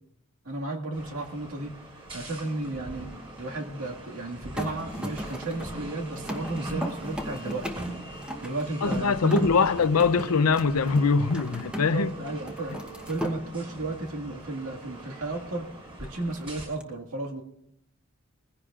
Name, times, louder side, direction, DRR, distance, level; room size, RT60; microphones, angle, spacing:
voice 1, 0.4-1.7 2.1-3.1 3.4-7.7 8.4-9.7 11.9-12.8 13.1-15.7 16.0-17.4, right 2 dB, 80° right, 2.0 m, -33 dB
sound 1, 0.9-16.6, right 2 dB, 25° right, 6.2 m, -42 dB
sound 2, 4.5-12.1 12.4-13.4 16.0-16.8, equal, 5° right, 1.0 m, -37 dB
voice 2, 8.8-12.1, left 5 dB, 85° left, 0.6 m, -23 dB
21.0 x 15.5 x 2.5 m
head